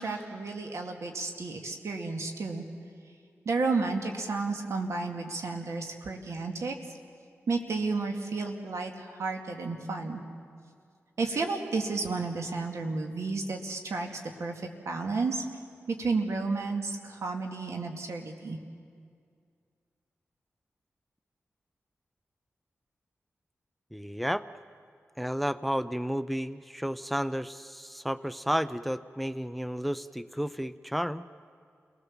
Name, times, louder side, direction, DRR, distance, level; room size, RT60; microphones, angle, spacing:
voice 1, 0.0-2.6 3.5-6.8 7.5-10.2 11.2-15.4 15.9-18.6, right 3 dB, 80° right, 3 dB, 2.3 m, -32 dB
voice 2, 23.9-24.5 25.2-31.3, equal, ahead, 15 dB, 0.5 m, -32 dB
29.0 x 19.0 x 7.5 m, 2.2 s
wide cardioid pair, 75°, 5 cm